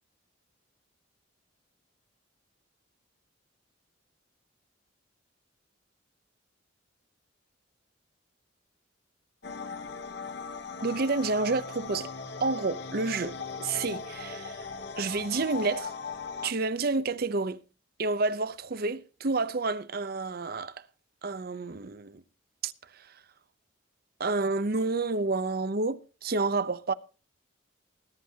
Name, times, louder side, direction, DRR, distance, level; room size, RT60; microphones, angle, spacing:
sound 1, 9.4-16.5, left 4 dB, 55° left, 1.1 m, -39 dB
voice 1, 10.8-12.1 12.4-14.6 15.0-15.9 16.4-17.6 18.0-20.7 21.2-22.2 22.6-22.7 24.2-26.9, right 3 dB, 50° right, 0.6 m, -29 dB
20.0 x 11.0 x 2.8 m
head